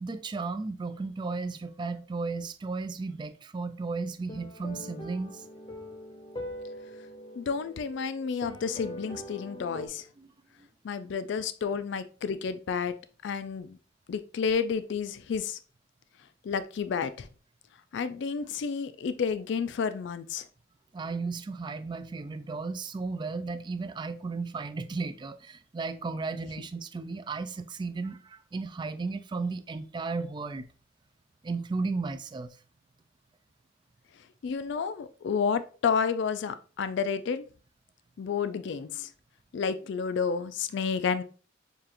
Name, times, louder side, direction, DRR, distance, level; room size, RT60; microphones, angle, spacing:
voice 1, 0.0-5.4 10.2-10.3 20.9-30.7 31.4-32.6, right 4 dB, 25° right, 0.3 m, -34 dB
sound 1, 4.3-9.9, left 1 dB, 25° left, 0.7 m, -42 dB
voice 2, 7.4-10.1 10.8-12.9 13.2-13.8 14.1-15.6 16.4-17.3 17.9-20.4 34.4-37.5 38.2-39.1 39.5-41.2, left 6 dB, 60° left, 0.3 m, -30 dB
6.7 x 2.4 x 2.9 m
head